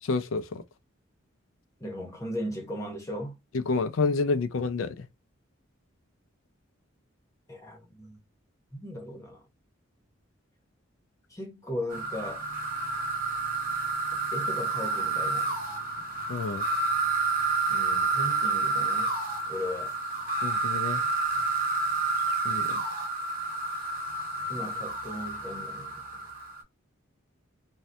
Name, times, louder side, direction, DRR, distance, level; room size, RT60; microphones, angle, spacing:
voice 1, 0.1-0.6 3.5-5.1 16.3-16.7 20.4-21.1 22.4-22.8, left 4 dB, 80° left, 0.4 m, -29 dB
voice 2, 1.8-3.4 7.5-8.2 8.7-9.5 11.3-12.5 14.3-15.6 17.7-19.1 19.5-19.9 24.5-26.3, left 1 dB, 15° left, 0.9 m, -37 dB
sound 1, 11.9-26.6, right 3 dB, 45° right, 1.0 m, -29 dB
2.6 x 2.2 x 3.3 m
head